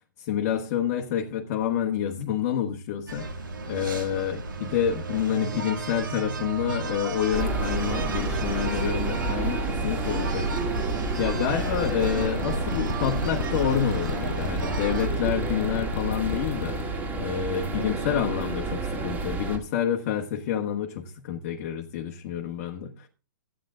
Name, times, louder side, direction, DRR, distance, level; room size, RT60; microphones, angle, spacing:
voice 1, 0.2-3.3 3.7-10.5 10.8-23.1, left 9 dB, 40° left, 1.4 m, -28 dB
sound 1, 3.1-15.1, right 2 dB, 90° right, 2.4 m, -33 dB
sound 2, 7.3-19.6, right 3 dB, 15° right, 2.1 m, -30 dB
sound 3, 11.7-16.8, left 9 dB, 60° left, 0.5 m, -34 dB
13.5 x 9.4 x 3.8 m
hypercardioid pair, 135°, 11 cm